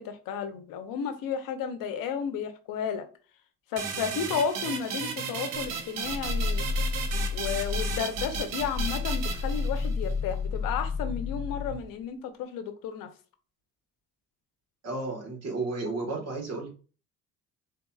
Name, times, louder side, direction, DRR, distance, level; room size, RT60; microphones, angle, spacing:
voice 1, 0.0-3.1 3.7-6.7 7.3-13.1, left 7 dB, 80° left, 0.7 m, -33 dB
sound 1, 3.8-10.1, right 6 dB, 70° right, 0.7 m, -35 dB
Growling, 5.6-11.9, left 4 dB, ahead, 0.6 m, -31 dB
voice 2, 14.8-16.7, right 3 dB, 50° right, 1.4 m, -33 dB
3.8 x 2.8 x 2.3 m
cardioid pair, 105°, 33 cm